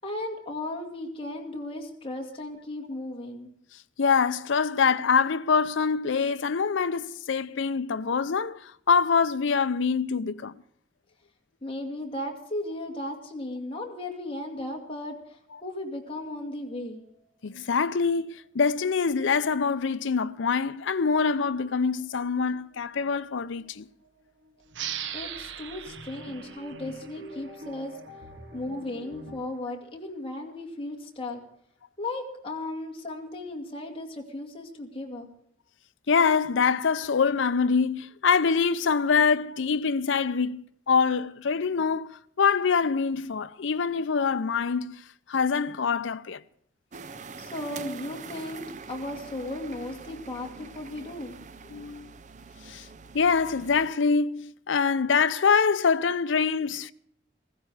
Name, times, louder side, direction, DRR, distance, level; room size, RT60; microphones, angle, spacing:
voice 1, 0.0-3.5 11.6-17.0 25.1-28.0 28.5-31.4 32.0-35.3 47.4-51.4, left 1 dB, 30° left, 2.2 m, -36 dB
voice 2, 4.0-10.5 17.4-23.9 36.1-45.0 45.3-46.4 51.7-52.1 52.7-52.9 53.1-56.9, left 5 dB, 75° left, 0.5 m, -25 dB
sound 1, 15.6-16.4 16.9-17.0 18.2-29.3, equal, 55° right, 4.8 m, -49 dB
sound 2, 24.7-28.0, right 9 dB, 70° right, 1.0 m, -39 dB
sound 3, 46.9-53.9, right 5 dB, 40° right, 0.6 m, -44 dB
15.5 x 15.0 x 4.8 m
head